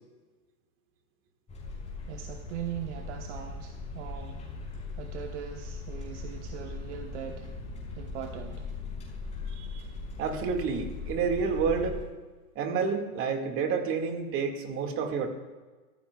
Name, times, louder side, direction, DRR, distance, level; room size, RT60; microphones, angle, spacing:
sound 1, 1.5-12.0, left 3 dB, 15° left, 5.0 m, -39 dB
voice 1, 2.1-4.4 4.9-7.5 8.0-8.7, right 9 dB, 55° right, 4 dB, 1.3 m, -40 dB
voice 2, 9.6-9.9 10.2-12.0 12.6-15.3, right 5 dB, 30° right, 4 dB, 2.0 m, -29 dB
24.5 x 15.0 x 2.4 m, 1.3 s
hypercardioid pair, 140°, 43 cm